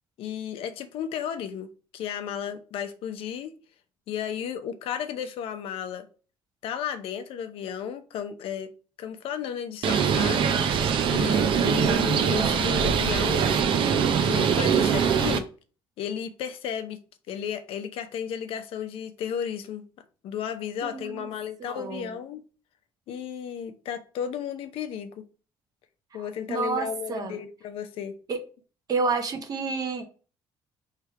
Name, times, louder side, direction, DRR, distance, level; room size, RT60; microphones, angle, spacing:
voice 1, 0.2-3.6 4.1-6.1 6.6-8.7 9.0-10.6 11.1-13.5 14.2-15.5 16.0-17.0 17.3-19.8 20.2-22.4 23.1-25.3 26.1-28.2, left 8 dB, 75° left, 0.7 m, -33 dB
Bird, 9.8-15.4, right 7 dB, 60° right, 0.6 m, -23 dB
voice 2, 20.8-21.3 21.6-22.1 26.5-27.3 28.3-28.4 28.9-30.1, right 4 dB, 40° right, 1.0 m, -29 dB
3.3 x 3.3 x 4.7 m
cardioid pair, 120°, 10 cm